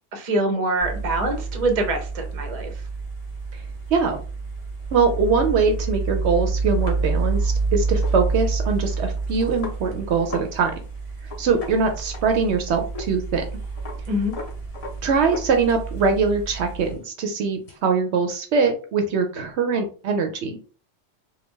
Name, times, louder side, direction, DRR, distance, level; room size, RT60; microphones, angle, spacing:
voice 1, 0.1-2.7 14.1-14.3, right 1 dB, 40° right, 4 dB, 0.6 m, -24 dB
sound 1, 0.8-16.9, right 4 dB, 55° left, 1.4 m, -29 dB
voice 2, 4.9-10.7 11.4-13.5 15.0-20.7, right 5 dB, 70° right, 6 dB, 0.8 m, -22 dB
sound 2, 6.8-10.5 10.8-10.9 11.2-12.6 12.9-13.1 13.4-16.0 16.4-17.8, left 3 dB, 35° left, 0.7 m, -39 dB
3.4 x 2.2 x 3.1 m, 0.38 s
omnidirectional pair, 1.2 m